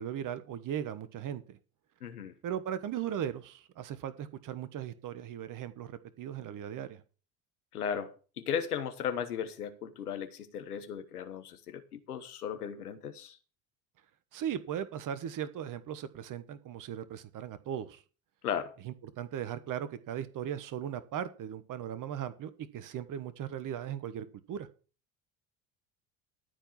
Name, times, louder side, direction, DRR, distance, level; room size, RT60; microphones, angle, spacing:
voice 1, 0.0-1.6 2.4-7.0 14.3-18.0 18.8-24.7, right 9 dB, 45° right, 1.2 m, -38 dB
voice 2, 2.0-2.3 7.7-13.4 18.4-18.7, left 8 dB, 85° left, 1.2 m, -36 dB
13.5 x 4.6 x 7.2 m
hypercardioid pair, 60°, 44 cm